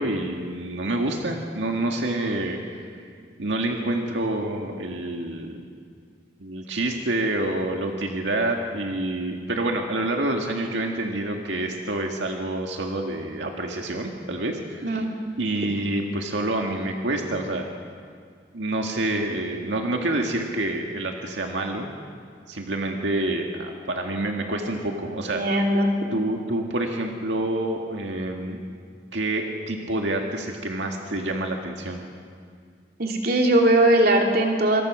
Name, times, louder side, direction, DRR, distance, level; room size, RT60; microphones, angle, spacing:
voice 1, 0.0-2.9 3.4-5.6 6.4-15.0 15.4-17.7 18.5-21.9 22.5-25.4 26.1-28.6 29.1-32.0, right 1 dB, 90° right, 2 dB, 1.9 m, -27 dB
voice 2, 25.3-25.9 33.0-34.8, right 1 dB, 55° right, 1 dB, 3.0 m, -19 dB
27.0 x 23.0 x 6.3 m, 2.2 s
head